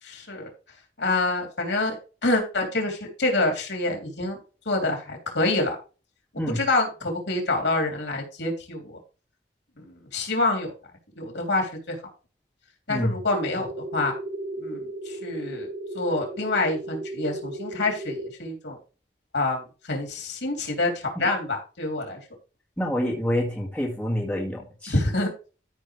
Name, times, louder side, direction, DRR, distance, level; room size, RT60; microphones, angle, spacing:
voice 1, 0.0-0.5 1.0-4.4 4.6-5.8 6.5-9.0 9.8-10.7 11.1-12.0 12.9-14.1 14.6-15.7 15.9-18.8 19.3-22.2 24.9-25.3, left 2 dB, 75° left, 2 dB, 3.2 m, -27 dB
sound 1, 13.3-18.3, right 1 dB, 25° right, 0.9 m, -35 dB
voice 2, 22.8-25.0, equal, 5° left, -3 dB, 2.2 m, -27 dB
14.0 x 5.7 x 3.3 m, 0.34 s
head